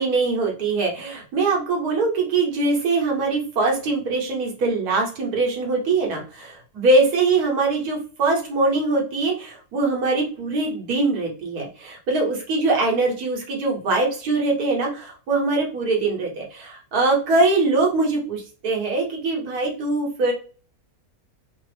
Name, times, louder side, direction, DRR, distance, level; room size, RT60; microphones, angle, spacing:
voice 1, 0.0-6.2 6.8-20.3, right 3 dB, 80° right, -1 dB, 1.5 m, -22 dB
3.3 x 2.0 x 3.2 m, 0.39 s
omnidirectional pair, 1.6 m